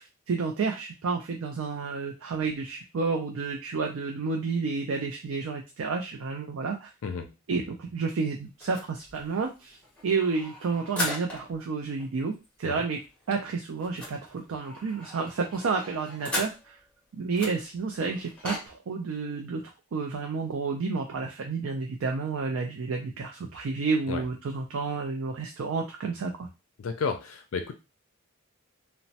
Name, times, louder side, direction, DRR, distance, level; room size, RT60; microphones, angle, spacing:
voice 1, 0.0-6.9 7.5-9.8 10.0-12.3 12.6-13.0 13.3-16.8 17.1-19.6 19.9-26.5, right 4 dB, 70° right, 2 dB, 0.4 m, -30 dB
sound 1, 8.6-11.6 12.0-12.1 12.3-12.5 12.7-16.9 17.3-18.7, left 1 dB, 5° left, 0.9 m, -38 dB
voice 2, 26.8-27.7, left 5 dB, 70° left, 7 dB, 0.4 m, -32 dB
3.0 x 2.1 x 2.7 m, 0.27 s
head